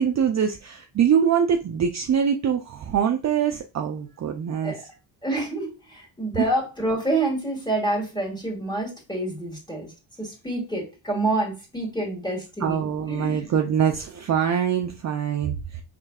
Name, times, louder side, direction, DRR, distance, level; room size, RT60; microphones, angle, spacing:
voice 1, 0.0-4.7 6.4-6.5 12.6-15.8, right 8 dB, 40° right, 4 dB, 0.5 m, -23 dB
voice 2, 5.2-9.9 10.2-13.5, right 2 dB, 10° left, -2 dB, 2.0 m, -27 dB
5.1 x 3.2 x 2.3 m, 0.30 s
cardioid pair, 105°, 44 cm